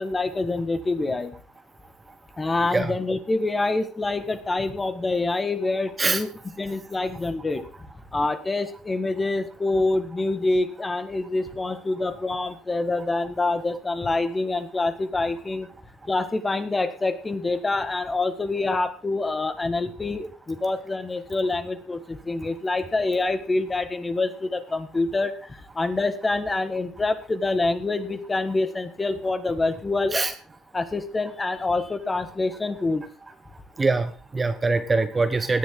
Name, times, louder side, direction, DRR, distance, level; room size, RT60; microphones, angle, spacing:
voice 1, 0.0-1.3 2.4-6.3 6.6-7.6 8.1-15.7 16.1-30.3 30.7-33.1, left 2 dB, 15° left, 9 dB, 1.7 m, -26 dB
voice 2, 33.8-35.6, right 3 dB, 20° right, 9 dB, 1.0 m, -23 dB
17.5 x 10.5 x 3.9 m, 0.39 s
cardioid pair, 130°, 0 cm